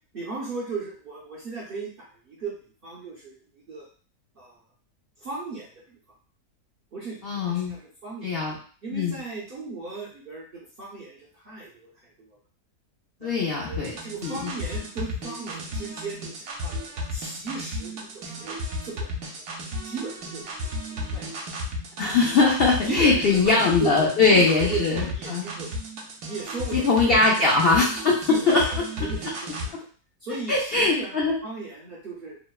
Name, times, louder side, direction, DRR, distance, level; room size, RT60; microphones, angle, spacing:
voice 1, 0.1-2.5 2.8-3.4 3.7-3.9 4.4-4.6 5.2-6.0 6.9-8.3 8.8-11.9 12.2-12.4 13.2-18.6 18.9-19.1 19.8-21.3 22.8-25.8 26.2-27.4 28.3-28.7 29.0-29.7 30.2-32.4, right 4 dB, 60° right, -6 dB, 0.6 m, -36 dB
voice 2, 7.2-7.7 8.2-8.6 8.9-9.2 13.2-13.9 14.2-14.5 22.0-25.4 26.7-28.9 30.5-31.3, left 3 dB, 75° left, -3 dB, 0.5 m, -21 dB
sound 1, 13.7-29.7, left 1 dB, 75° right, 1.1 m, -34 dB
2.9 x 2.0 x 2.2 m, 0.43 s
omnidirectional pair, 1.6 m